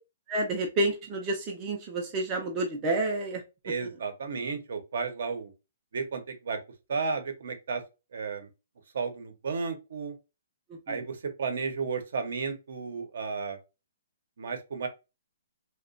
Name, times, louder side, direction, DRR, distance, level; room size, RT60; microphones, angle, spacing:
voice 1, 0.3-3.4 3.8-3.9 10.7-11.0, right 2 dB, 15° right, 0.3 m, -30 dB
voice 2, 3.6-5.5 5.9-6.6 6.9-7.8 8.1-8.5 8.9-10.1 10.9-13.6 14.4-14.9, right 5 dB, 60° right, 0.7 m, -33 dB
2.8 x 2.1 x 2.4 m
hypercardioid pair, 175°, 0 cm